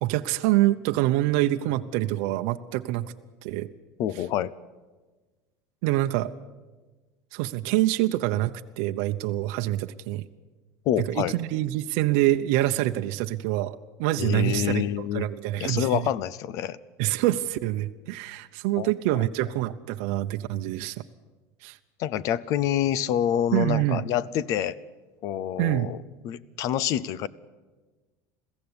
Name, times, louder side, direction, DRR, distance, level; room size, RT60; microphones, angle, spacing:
voice 1, 0.0-3.1 3.4-3.7 5.8-6.3 7.3-10.3 11.1-14.8 15.1-16.1 17.0-21.0 21.6-21.8 23.5-24.0 25.6-25.9, right 15 dB, 65° right, 7 dB, 0.8 m, -26 dB
voice 2, 4.0-4.5 10.9-11.4 14.2-15.3 15.6-16.8 18.8-19.2 22.0-24.8 25.2-26.0 26.2-27.3, left 10 dB, 45° left, 20 dB, 0.7 m, -27 dB
22.0 x 15.5 x 9.7 m, 1.3 s
cardioid pair, 165°, 8 cm